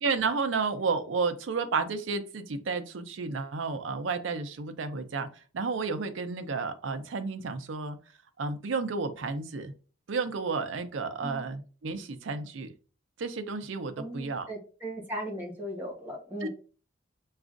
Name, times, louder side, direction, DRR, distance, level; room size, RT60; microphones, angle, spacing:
voice 1, 0.0-5.3 5.5-8.0 8.4-9.7 10.1-12.7 13.2-14.5 16.4-16.5, right 4 dB, 90° right, 0.5 m, -31 dB
voice 2, 14.0-16.5, equal, 10° right, 1.3 m, -37 dB
5.9 x 2.4 x 2.5 m
head